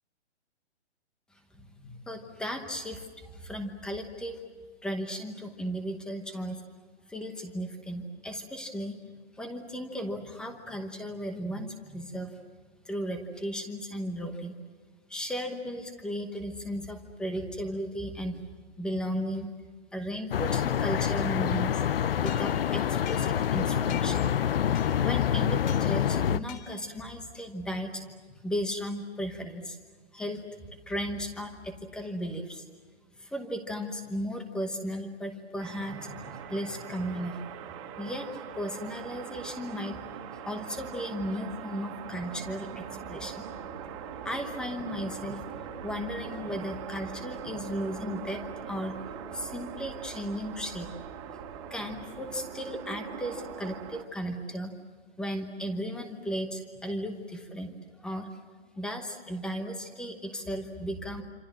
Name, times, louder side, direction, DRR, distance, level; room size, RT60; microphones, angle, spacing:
voice 1, 1.5-4.4 4.8-6.6 7.1-9.0 9.4-12.4 12.8-14.5 15.1-18.4 18.8-19.5 19.9-21.8 22.2-24.3 25.0-28.0 28.3-29.8 30.1-32.6 33.2-37.4 38.0-38.3 38.5-40.1 40.4-43.4 43.8-43.9 44.2-45.4 45.8-49.0 49.3-50.9 51.7-54.7 55.2-58.3 58.7-61.2, equal, ahead, 6 dB, 1.0 m, -35 dB
sound 1, 20.3-26.4, left 9 dB, 55° left, 0.8 m, -26 dB
sound 2, 22.3-23.6 23.9-24.3 24.8-25.2 25.7-25.9 26.5-27.0, left 9 dB, 35° left, 3.4 m, -46 dB
sound 3, 35.6-54.0, right 8 dB, 25° right, 2.1 m, -41 dB
27.0 x 27.0 x 7.5 m, 1.5 s
hypercardioid pair, 165°, 35 cm